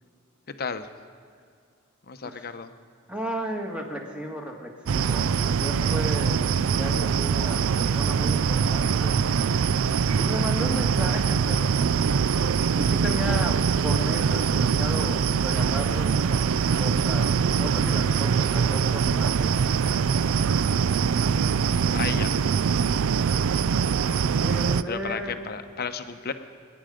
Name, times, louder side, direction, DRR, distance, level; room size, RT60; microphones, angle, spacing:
voice 1, 0.6-0.9 2.1-2.7 21.9-22.3 24.9-26.3, left 5 dB, 50° left, 9 dB, 0.8 m, -33 dB
voice 2, 3.1-9.3 10.1-11.8 12.8-19.6 24.4-25.4, equal, 5° right, 1 dB, 1.7 m, -34 dB
sound 1, 4.9-24.8, right 6 dB, 80° right, 0.4 m, -23 dB
28.0 x 9.7 x 5.1 m, 2.2 s
head